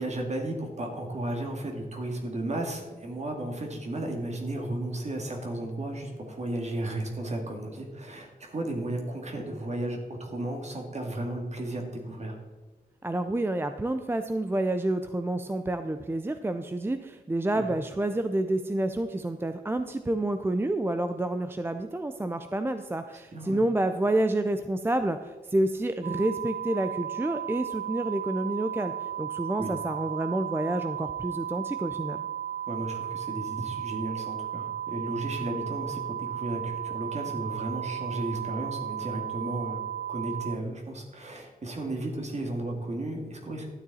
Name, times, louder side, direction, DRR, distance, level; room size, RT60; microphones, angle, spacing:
voice 1, 0.0-12.4 17.5-17.7 23.1-23.6 29.6-29.7 32.7-39.8 40.1-43.7, right 1 dB, 45° right, 2 dB, 2.1 m, -34 dB
voice 2, 13.0-28.9 29.2-32.3, right 1 dB, 15° right, 8 dB, 0.4 m, -29 dB
sound 1, 26.0-40.6, right 10 dB, 75° right, 0.5 m, -35 dB
12.5 x 9.5 x 4.2 m, 1.3 s
wide cardioid pair, 160°, 16 cm